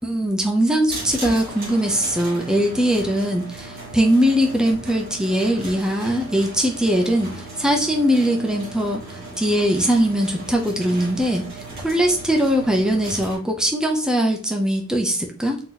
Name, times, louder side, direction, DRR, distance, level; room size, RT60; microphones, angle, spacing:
voice 1, 0.0-15.6, equal, 5° right, 1 dB, 0.6 m, -21 dB
sound 1, 0.9-13.4, right 2 dB, 45° right, 1.7 m, -36 dB
3.9 x 3.0 x 3.9 m, 0.41 s
head